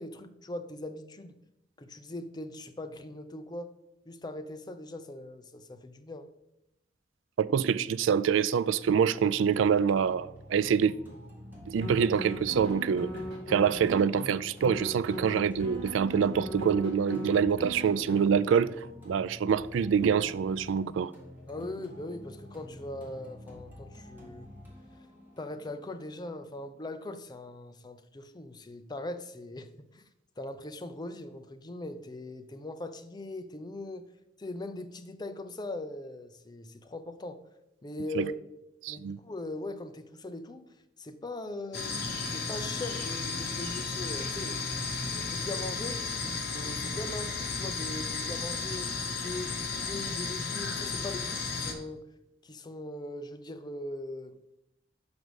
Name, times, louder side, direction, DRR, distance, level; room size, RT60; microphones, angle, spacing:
voice 1, 0.0-1.4 1.8-3.7 4.1-6.3 21.5-24.5 25.4-30.0 30.4-34.1 34.4-37.4 37.8-38.4 38.9-40.6 41.0-42.0 42.3-44.7 45.1-46.0 46.5-52.1 52.4-54.6, left 2 dB, 20° left, 0.5 m, -40 dB
voice 2, 7.4-10.9 11.7-13.1 13.5-21.1 38.1-38.3 38.8-39.2, right 7 dB, 85° right, 0.3 m, -26 dB
sound 1, 9.2-27.2, left 1 dB, 10° right, 2.0 m, -49 dB
sound 2, 11.8-14.3 14.6-18.2, equal, 60° right, 3.3 m, -39 dB
sound 3, 41.7-51.7, left 4 dB, 55° left, 1.3 m, -34 dB
6.2 x 5.2 x 6.3 m
head